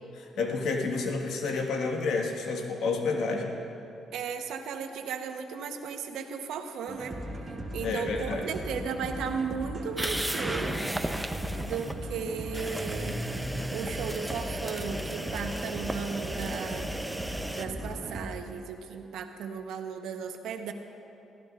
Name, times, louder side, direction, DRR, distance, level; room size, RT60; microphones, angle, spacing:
voice 1, 0.2-3.5 7.8-8.4, left 4 dB, 80° left, 1 dB, 1.6 m, -30 dB
voice 2, 4.1-7.2 7.7-10.8 11.6-13.2 13.7-16.9 17.5-20.7, right 6 dB, 85° right, 5 dB, 1.0 m, -35 dB
sound 1, 6.9-18.3, right 1 dB, 25° right, 1.5 m, -38 dB
sound 2, 10.0-11.9 12.5-17.7, right 1 dB, 5° right, 0.7 m, -35 dB
22.5 x 14.5 x 2.5 m, 2.8 s
cardioid pair, 90°, 0 cm